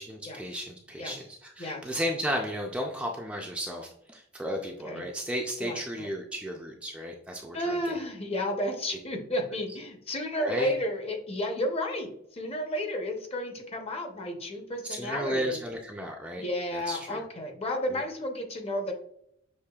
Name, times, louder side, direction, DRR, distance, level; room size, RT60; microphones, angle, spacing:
voice 1, 0.0-7.9 10.4-10.7 14.9-16.4 16.7-17.2 17.9-18.0, equal, 5° right, 0 dB, 0.4 m, -34 dB
voice 2, 4.6-5.0 5.6-6.1 7.5-15.6 16.4-18.9, left 1 dB, 30° left, 3 dB, 0.7 m, -32 dB
6.6 x 3.1 x 2.3 m, 0.71 s
head